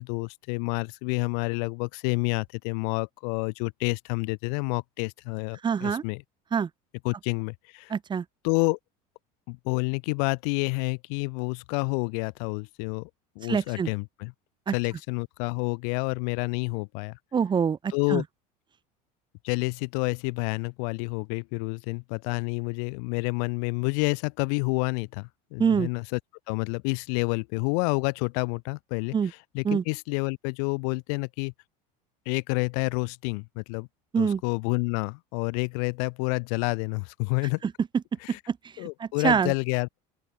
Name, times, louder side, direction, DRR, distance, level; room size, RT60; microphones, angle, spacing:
voice 1, 0.0-6.2 7.0-7.9 8.4-8.8 9.5-13.1 13.4-14.3 14.7-17.2 17.9-18.2 19.4-26.2 26.5-31.5 32.3-33.9 34.2-37.6 38.2-38.4 38.8-40.0, left 39 dB, 75° left, 2.0 m, -29 dB
voice 2, 5.6-6.0 6.5-6.7 7.9-8.2 13.5-13.9 14.7-14.8 17.3-18.2 25.6-25.9 29.1-29.3 29.6-29.8 34.1-34.4 37.6-37.7 38.3-39.5, right 6 dB, 20° right, 2.8 m, -25 dB
open air
cardioid pair, 145°, 20 cm